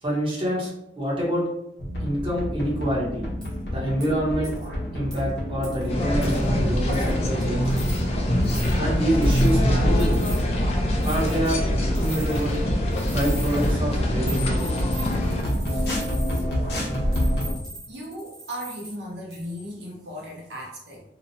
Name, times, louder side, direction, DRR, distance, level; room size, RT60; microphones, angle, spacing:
voice 1, 0.0-1.4 2.0-3.3 3.7-4.6 4.9-7.7 8.8-10.2 11.0-11.6 11.9-12.6 13.1-14.6, equal, 30° right, -5 dB, 0.8 m, -26 dB
sound 1, 1.8-17.5, equal, 65° left, 0.8 m, -30 dB
sound 2, 3.4-3.5 4.0-4.1 4.4-4.7 5.1-5.2 5.6-5.9 6.2-6.5 6.9-7.3 7.7-8.0 8.4-8.7 9.2-9.6 10.0-10.4 11.0-11.6 11.9-12.6 12.9-13.7 14.3-16.4 17.1-18.9 19.3-19.7, equal, 5° left, 0.8 m, -40 dB
sound 3, 5.9-15.4, equal, 35° left, 0.4 m, -24 dB
voice 2, 15.7-16.0 17.9-21.0, equal, 70° right, -2 dB, 0.6 m, -37 dB
2.8 x 2.0 x 2.7 m, 0.82 s
head